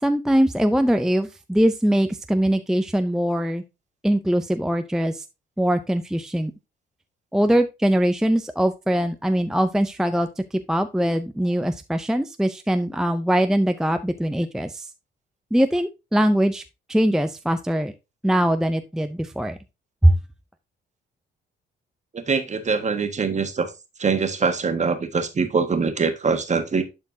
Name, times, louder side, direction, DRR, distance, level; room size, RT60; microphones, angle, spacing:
voice 1, 0.0-3.6 4.0-5.2 5.6-6.5 7.3-14.9 15.5-16.6 16.9-17.9 18.2-19.6 20.0-20.2, right 1 dB, 5° right, 0.5 m, -22 dB
voice 2, 22.1-23.7 24.0-26.8, right 5 dB, 35° right, 1.5 m, -23 dB
11.5 x 4.4 x 2.7 m
cardioid pair, 90°, 20 cm